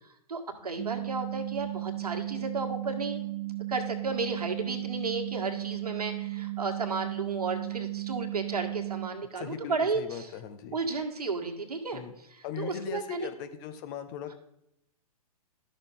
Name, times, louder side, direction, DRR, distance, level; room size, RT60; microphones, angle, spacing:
voice 1, 0.3-3.3 3.7-10.3 10.7-13.3, right 4 dB, 80° right, 3 dB, 1.7 m, -33 dB
sound 1, 0.8-9.1, right 18 dB, 50° right, 0.8 m, -35 dB
voice 2, 9.3-10.8 11.9-12.1 12.4-14.3, left 9 dB, 35° left, 10 dB, 0.7 m, -39 dB
12.0 x 6.3 x 3.8 m, 0.83 s
figure-of-eight pair, 120°, 20 cm